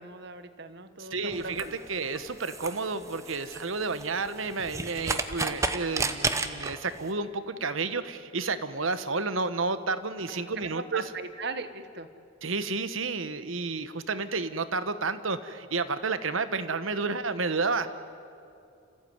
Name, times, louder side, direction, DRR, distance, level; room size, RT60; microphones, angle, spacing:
voice 1, 0.0-1.8 10.3-12.1, right 3 dB, 55° right, 11 dB, 1.3 m, -39 dB
voice 2, 1.0-11.1 12.4-17.9, right 4 dB, 80° right, 12 dB, 1.2 m, -31 dB
sound 1, 1.3-7.1, right 3 dB, 15° right, 0.9 m, -33 dB
30.0 x 15.0 x 9.5 m, 2.5 s
head